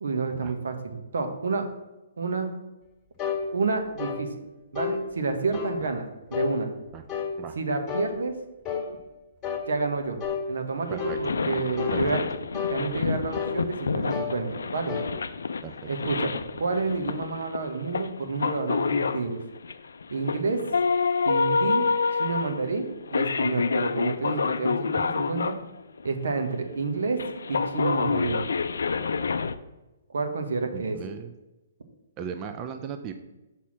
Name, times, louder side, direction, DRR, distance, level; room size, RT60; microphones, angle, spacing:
voice 1, 0.0-1.6 2.2-2.5 3.5-4.3 4.7-6.1 6.3-6.7 7.6-8.3 9.7-10.2 10.5-12.3 12.7-15.0 15.9-19.4 20.1-20.6 21.2-21.9 22.2-25.5 26.0-27.2 27.5-28.4 30.1-31.0, right 4 dB, 80° right, 6 dB, 1.1 m, -29 dB
sound 1, 3.2-3.4 4.0-4.2 4.8-5.0 5.5-5.8 6.3-6.5 7.1-7.3 7.9-8.1 8.7-8.9 9.4-9.7 10.2-10.4 11.0-11.2 11.8-12.0 12.5-12.8 13.3-13.6 14.1-14.4 14.9-15.1, left 7 dB, 20° left, 1.5 m, -30 dB
sound 2, 10.2-10.3 10.8-25.6 26.0-29.5, left 5 dB, 80° left, 0.4 m, -28 dB
voice 2, 30.7-31.3 32.2-33.1, right 7 dB, 25° right, 7 dB, 0.4 m, -37 dB
5.6 x 4.3 x 6.2 m, 1.0 s
hypercardioid pair, 145°, 0 cm